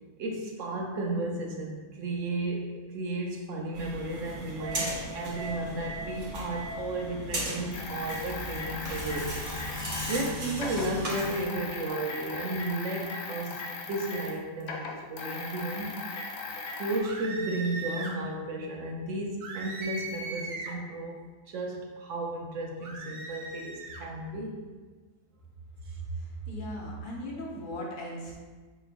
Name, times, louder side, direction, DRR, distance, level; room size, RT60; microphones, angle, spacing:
voice 1, 0.2-9.3 10.1-16.0 16.7-24.6 25.9-26.0, right 2 dB, 70° right, 0 dB, 0.9 m, -34 dB
sound 1, 3.7-11.5, equal, 40° right, 0.7 m, -36 dB
sound 2, 7.7-14.4 14.6-17.0, left 4 dB, 90° left, 1.1 m, -38 dB
sound 3, 17.0-18.2 19.4-20.8 22.8-24.0, right 3 dB, 85° right, 1.1 m, -39 dB
voice 2, 26.1-28.3, equal, 45° left, -3 dB, 0.7 m, -37 dB
4.7 x 3.0 x 2.5 m, 1.4 s
omnidirectional pair, 1.5 m